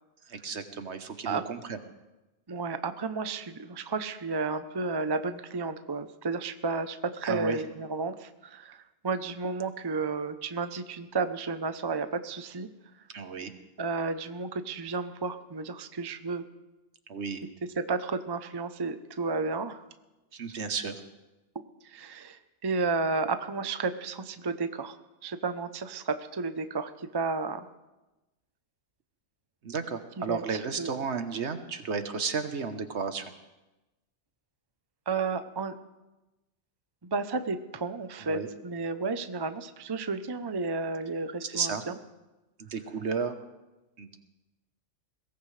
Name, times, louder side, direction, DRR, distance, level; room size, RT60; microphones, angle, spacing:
voice 1, 0.3-1.8 7.2-7.6 13.1-13.5 17.1-17.4 20.3-21.0 29.6-33.3 38.2-38.5 41.4-41.8 42.6-43.4 44.0-44.1, right 5 dB, 60° right, 9 dB, 1.3 m, -33 dB
voice 2, 2.5-12.7 13.8-16.4 17.8-19.8 21.8-25.0 25.2-27.7 30.3-30.9 35.1-35.7 37.1-42.0, right 4 dB, 25° right, 9 dB, 0.6 m, -32 dB
22.0 x 18.0 x 3.3 m, 1.0 s
omnidirectional pair, 1.3 m